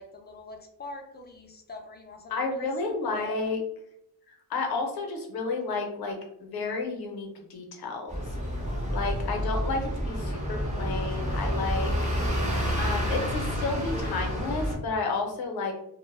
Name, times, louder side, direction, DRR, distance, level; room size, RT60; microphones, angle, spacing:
voice 1, 0.0-3.6, left 2 dB, 25° left, 3 dB, 0.4 m, -44 dB
voice 2, 2.3-3.6 4.5-8.2 8.9-11.9 12.8-15.8, left 3 dB, 75° left, 3 dB, 0.7 m, -31 dB
sound 1, 8.1-14.8, equal, 20° right, 0.7 m, -29 dB
2.1 x 2.0 x 3.2 m, 0.77 s
cardioid pair, 110°, 38 cm